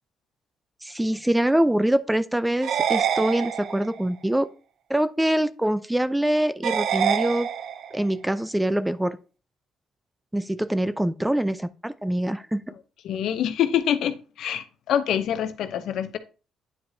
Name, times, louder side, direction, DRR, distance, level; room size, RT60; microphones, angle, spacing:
voice 1, 0.8-4.5 4.9-7.5 7.9-9.2 10.3-12.6, right 1 dB, 10° right, 0.5 m, -24 dB
sound 1, 2.6-4.0 6.6-8.0, right 8 dB, 70° right, 0.5 m, -26 dB
voice 2, 13.0-16.2, left 9 dB, 75° left, 0.7 m, -25 dB
9.5 x 4.9 x 2.7 m
cardioid pair, 90°, 0 cm